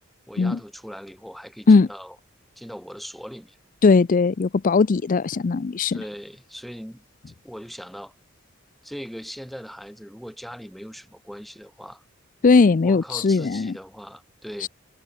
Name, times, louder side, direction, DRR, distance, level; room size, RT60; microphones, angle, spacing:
voice 1, 0.3-2.2 2.6-3.6 5.9-8.1 8.8-12.0 12.8-14.7, equal, ahead, 1.6 m, -39 dB
voice 2, 3.8-6.0 12.4-13.7 14.6-14.7, left 4 dB, 40° left, 0.4 m, -18 dB
head